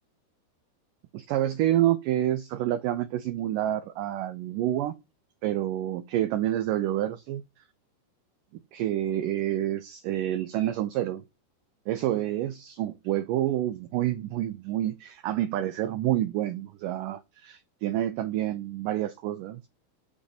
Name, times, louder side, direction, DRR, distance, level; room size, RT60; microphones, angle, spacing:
voice 1, 1.1-4.9 5.4-7.4 8.7-11.2 11.9-19.7, right 13 dB, 90° right, 1.8 m, -28 dB
7.4 x 5.2 x 6.8 m
omnidirectional pair, 4.5 m